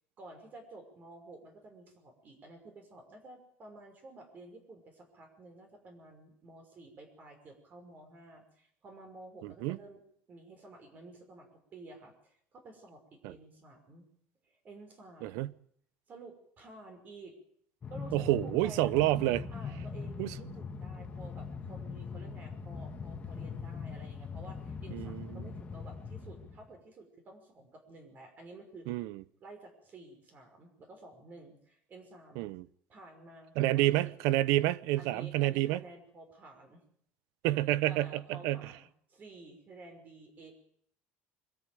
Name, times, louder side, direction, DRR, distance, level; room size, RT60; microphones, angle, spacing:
voice 1, 0.2-10.0 10.3-14.1 14.4-15.5 16.1-17.3 17.9-29.1 29.4-32.5 32.9-34.1 35.0-36.8 37.8-40.5, right 2 dB, 35° right, 5.6 m, -52 dB
voice 2, 9.4-9.8 13.2-13.3 15.2-15.5 18.1-19.4 20.2-20.3 24.9-25.5 28.9-29.2 32.4-32.7 33.6-35.8 37.4-38.6, right 16 dB, 80° right, 0.9 m, -29 dB
Train, 17.8-26.7, left 5 dB, 25° left, 2.0 m, -41 dB
23.5 x 13.5 x 9.3 m
cardioid pair, 135°, 5 cm